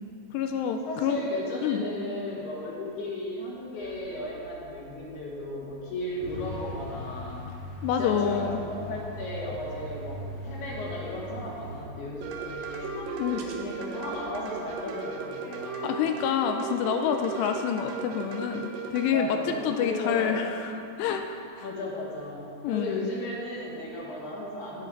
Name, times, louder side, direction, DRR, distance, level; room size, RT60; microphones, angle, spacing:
voice 1, 0.3-1.2 1.6-1.8 7.8-8.6 13.2-13.4 15.8-21.7 22.6-23.1, left 8 dB, 85° left, 5 dB, 2.5 m, -28 dB
voice 2, 0.9-7.4 8.0-16.0 19.1-20.4 21.6-24.9, left 1 dB, 65° left, -5 dB, 3.4 m, -35 dB
sound 1, 3.8-14.6, right 2 dB, 70° right, 3.6 m, -50 dB
Truck, 6.2-11.8, left 1 dB, 50° right, 1.7 m, -39 dB
sound 2, 12.2-19.1, right 5 dB, 90° right, 1.9 m, -36 dB
18.5 x 6.3 x 3.9 m, 2.7 s
omnidirectional pair, 5.2 m